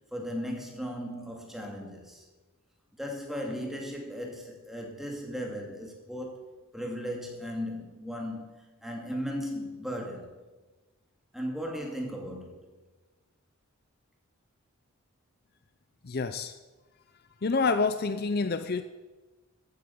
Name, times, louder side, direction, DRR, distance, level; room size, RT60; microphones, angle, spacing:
voice 1, 0.1-2.2 3.0-6.5 6.7-10.3 11.3-12.8, equal, ahead, 0 dB, 2.3 m, -36 dB
voice 2, 16.0-16.5 17.4-18.8, left 4 dB, 45° left, 10 dB, 0.5 m, -27 dB
15.0 x 8.7 x 6.9 m, 1.2 s
head